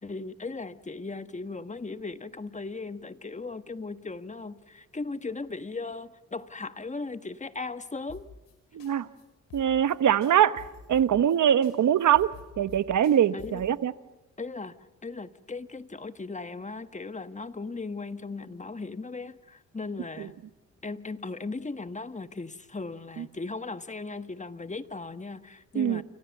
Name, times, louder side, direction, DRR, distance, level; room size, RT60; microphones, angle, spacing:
voice 1, 0.0-8.3 13.3-13.6 14.4-14.8 15.0-20.3 20.8-26.0, left 3 dB, 20° left, 11 dB, 1.4 m, -37 dB
sound 1, 8.1-8.5 8.8-8.9 9.2-9.3 9.5-10.0 10.2-11.4 11.6-11.7 12.0-13.7, left 8 dB, 90° left, 6.2 m, -48 dB
voice 2, 8.7-9.1 9.5-10.6 10.9-12.3 12.6-13.9 20.2-20.3 23.2-23.3 25.7-26.0, right 10 dB, 65° right, 14 dB, 1.1 m, -23 dB
29.5 x 26.0 x 7.2 m, 1.1 s
cardioid pair, 70°, 32 cm